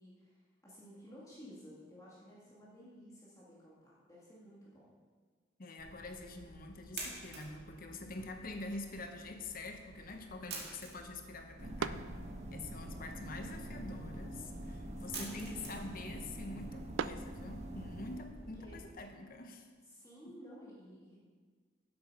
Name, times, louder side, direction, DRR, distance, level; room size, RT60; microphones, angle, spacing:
voice 1, 0.0-4.9 12.9-13.9 15.0-15.8 18.6-18.7 19.8-21.2, equal, 20° left, -7 dB, 2.0 m, -55 dB
voice 2, 5.6-12.1 12.5-19.7 20.2-20.4, left 2 dB, 50° left, 5 dB, 0.9 m, -46 dB
sound 1, 5.8-18.9, right 3 dB, 60° right, 2.2 m, -51 dB
sound 2, 8.0-18.1, right 6 dB, 85° right, 0.4 m, -48 dB
sound 3, 11.6-18.2, right 1 dB, 40° right, 1.1 m, -45 dB
11.0 x 8.1 x 5.4 m, 1.5 s
head